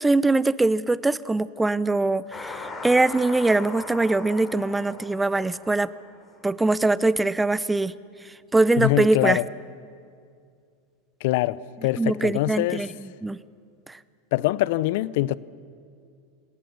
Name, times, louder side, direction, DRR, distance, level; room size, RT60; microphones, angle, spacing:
voice 1, 0.0-5.9 6.4-7.9 8.5-9.4 12.0-12.9 13.2-13.4 13.9-14.0, right 2 dB, 10° right, 0.7 m, -22 dB
sound 1, 2.3-6.6, left 3 dB, 25° left, 4.1 m, -39 dB
voice 2, 8.8-9.4 11.2-12.9 14.3-15.4, left 17 dB, 60° left, 0.6 m, -24 dB
28.0 x 18.0 x 7.0 m
hypercardioid pair, 90°, 0 cm